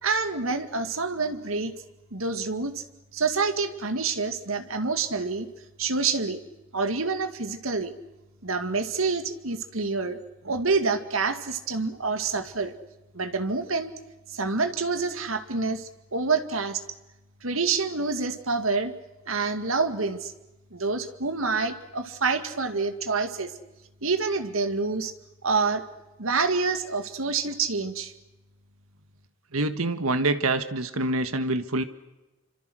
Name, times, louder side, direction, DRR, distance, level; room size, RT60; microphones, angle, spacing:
voice 1, 0.0-1.7 2.1-2.8 3.1-5.5 5.8-6.4 6.7-7.9 8.4-10.2 10.4-12.7 13.1-13.9 14.3-16.8 17.4-18.9 19.3-20.3 20.7-23.5 24.0-25.1 25.4-25.8 26.2-28.1, right 4 dB, 70° right, 8 dB, 2.2 m, -27 dB
voice 2, 29.5-31.8, right 2 dB, 90° right, 10 dB, 1.6 m, -26 dB
27.5 x 26.0 x 6.3 m, 1.0 s
head